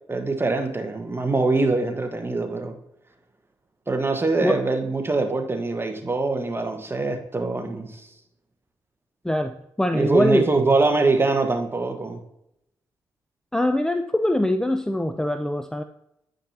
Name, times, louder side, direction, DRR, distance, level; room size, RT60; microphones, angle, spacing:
voice 1, 0.1-2.8 3.9-8.1 9.9-12.2, right 3 dB, 25° right, 5 dB, 1.3 m, -23 dB
voice 2, 9.2-10.5 13.5-15.8, left 1 dB, 5° left, 8 dB, 0.4 m, -23 dB
8.9 x 5.3 x 2.8 m, 0.81 s
supercardioid pair, 45°, 10 cm